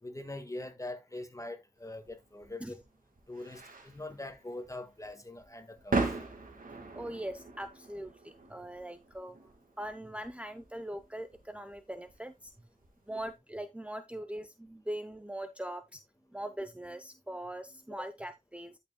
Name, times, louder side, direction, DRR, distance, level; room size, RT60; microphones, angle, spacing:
voice 1, 0.0-2.8 3.3-6.1 17.9-18.1, left 2 dB, 25° left, 1.6 m, -43 dB
sound 1, 2.0-13.3, right 3 dB, 85° right, 2.1 m, -40 dB
voice 2, 6.9-9.5 9.8-12.5 13.1-16.0 16.3-18.8, right 1 dB, 10° right, 0.7 m, -41 dB
12.0 x 6.1 x 2.2 m
wide cardioid pair, 60°, 14 cm